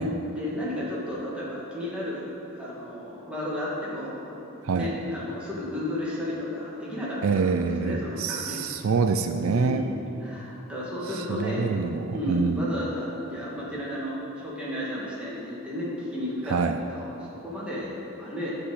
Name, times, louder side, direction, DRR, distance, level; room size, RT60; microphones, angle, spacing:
voice 1, 0.0-2.3 2.5-4.2 4.7-8.6 9.5-9.9 10.2-11.6 12.1-16.6 16.9-18.6, left 1 dB, 5° right, -7 dB, 2.1 m, -33 dB
voice 2, 7.2-9.8 11.1-12.7 16.5-16.8, right 4 dB, 70° right, 8 dB, 0.4 m, -26 dB
9.9 x 5.4 x 8.0 m, 2.9 s
head